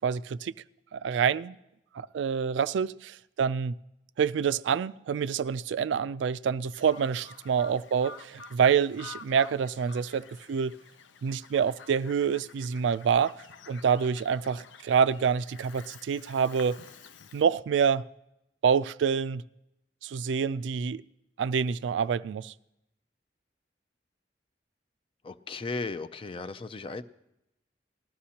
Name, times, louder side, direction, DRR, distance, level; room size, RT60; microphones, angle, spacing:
voice 1, 0.0-0.5 0.9-1.6 1.9-3.8 4.2-10.8 11.2-13.4 13.7-16.8 17.3-18.1 18.6-19.4 20.0-21.0 21.4-22.5, right 7 dB, 85° right, 0.3 m, -27 dB
Bird vocalization bird call bird song, 6.7-17.4, left 5 dB, 90° left, 0.6 m, -50 dB
voice 2, 25.2-27.0, left 3 dB, 30° left, 0.4 m, -36 dB
19.0 x 13.0 x 2.9 m
head